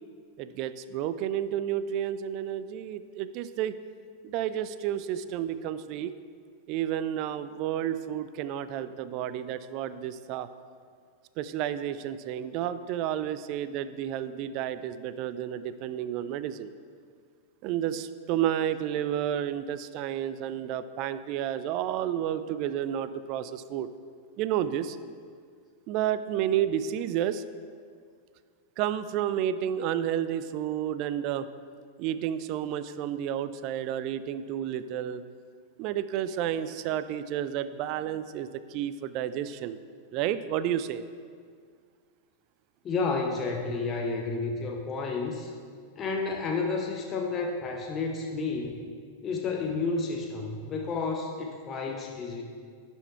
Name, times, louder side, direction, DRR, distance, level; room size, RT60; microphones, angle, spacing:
voice 1, 0.4-3.7 4.2-6.1 6.7-10.5 11.4-16.7 17.6-23.9 24.4-25.0 25.9-27.4 28.8-31.5 32.0-35.2 35.8-39.8 40.1-41.0, right 10 dB, 40° right, 13 dB, 0.3 m, -31 dB
voice 2, 42.8-45.5 46.0-48.9 49.2-52.4, left 4 dB, 25° left, 1 dB, 0.7 m, -31 dB
11.0 x 4.4 x 4.5 m, 2.1 s
figure-of-eight pair, 90°, 0 cm